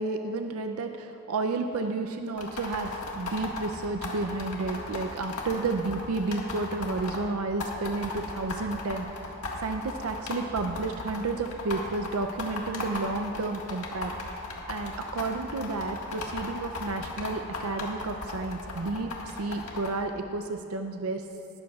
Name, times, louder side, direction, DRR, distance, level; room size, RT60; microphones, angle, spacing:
voice 1, 0.0-9.1 9.6-14.1 14.7-21.2, right 3 dB, 75° right, 5 dB, 0.5 m, -31 dB
sound 1, 2.4-7.2 7.6-19.9, left 3 dB, 75° left, 1.6 m, -36 dB
19.0 x 12.5 x 2.4 m, 2.9 s
head